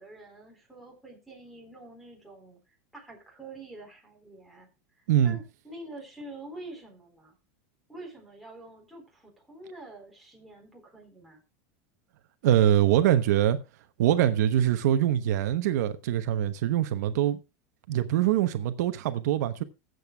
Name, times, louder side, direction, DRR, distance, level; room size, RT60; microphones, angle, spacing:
voice 1, 0.0-2.6 2.9-4.7 5.0-7.4 7.9-11.4, right 2 dB, ahead, 4.1 m, -46 dB
voice 2, 5.1-5.4 12.4-13.6 14.0-17.4 17.9-19.6, right 11 dB, 80° right, 0.9 m, -23 dB
21.0 x 7.9 x 2.3 m
supercardioid pair, 150°, 9 cm